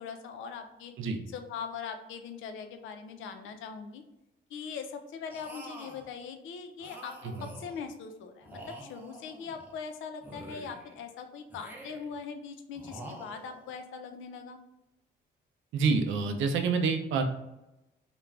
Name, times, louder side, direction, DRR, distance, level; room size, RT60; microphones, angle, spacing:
voice 1, 0.0-0.9 1.3-4.0 4.5-14.6, left 6 dB, 80° left, 7 dB, 0.4 m, -41 dB
sound 1, 5.3-6.1 6.8-7.9 8.4-9.8 10.2-11.0 11.5-12.2 12.7-13.8, right 1 dB, 10° right, 0.6 m, -47 dB
voice 2, 15.7-17.2, right 5 dB, 75° right, 5 dB, 0.5 m, -27 dB
2.4 x 2.2 x 3.2 m, 0.91 s
cardioid pair, 90°, 20 cm